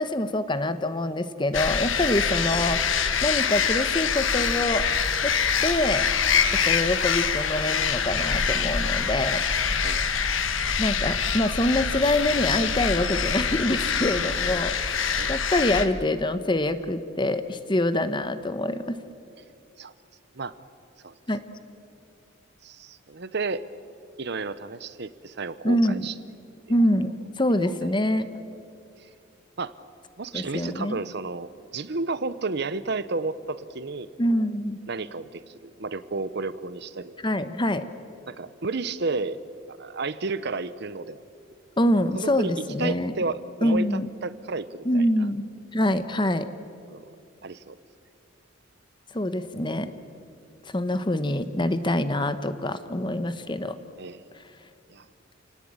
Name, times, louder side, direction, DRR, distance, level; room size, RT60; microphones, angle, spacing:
voice 1, 0.0-2.8 3.2-4.9 5.2-5.3 5.6-6.1 6.6-9.4 10.8-19.0 21.3-21.4 25.6-26.1 26.7-28.3 30.3-31.0 34.2-34.8 37.2-37.8 41.8-43.1 43.6-44.1 44.8-45.5 45.7-46.5 49.1-49.9 50.7-53.8, left 1 dB, 25° left, 11 dB, 1.0 m, -25 dB
sound 1, 1.5-15.9, left 6 dB, 70° left, 1.4 m, -25 dB
voice 2, 22.6-23.6 24.2-26.1 26.7-26.8 27.5-27.9 29.0-29.1 29.6-29.7 30.2-34.1 34.9-37.2 38.3-39.4 39.8-41.2 42.1-42.5 42.8-45.0 46.9-47.1 47.4-47.8 54.0-54.2 54.9-55.1, right 3 dB, 55° right, 15 dB, 0.8 m, -32 dB
28.5 x 18.5 x 8.8 m, 2.6 s
head